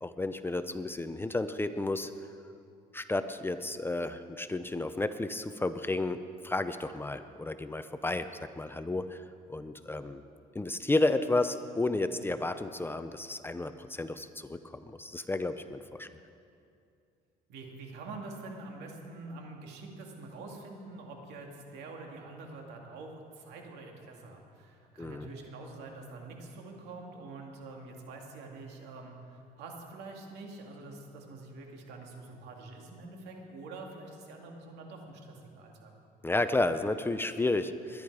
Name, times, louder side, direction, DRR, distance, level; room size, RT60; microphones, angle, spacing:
voice 1, 0.0-2.1 2.9-10.2 10.5-16.1 25.0-25.3 36.2-38.0, left 2 dB, 15° left, 10 dB, 0.5 m, -32 dB
voice 2, 17.5-35.9, right 3 dB, 85° right, 1 dB, 2.3 m, -46 dB
21.0 x 10.5 x 4.8 m, 2.5 s
cardioid pair, 110°, 17 cm